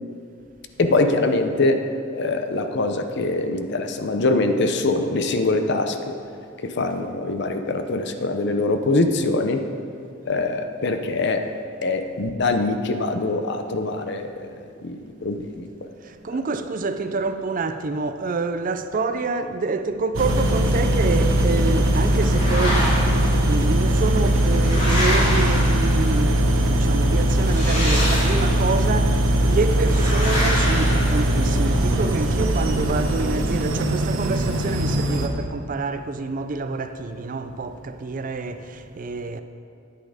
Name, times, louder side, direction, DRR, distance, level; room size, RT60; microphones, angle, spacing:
voice 1, 0.8-1.8 2.1-5.9 6.8-9.6 10.3-11.4 11.8-14.3 14.8-15.7, left 2 dB, 55° left, 0.7 m, -23 dB
voice 2, 16.0-39.4, right 3 dB, 40° right, 0.4 m, -27 dB
sound 1, 20.1-35.3, right 1 dB, 75° right, 0.9 m, -20 dB
sound 2, 22.1-23.3 24.1-26.3 27.4-28.8 29.8-31.7, equal, 40° left, 2.9 m, -27 dB
9.6 x 8.5 x 5.0 m
head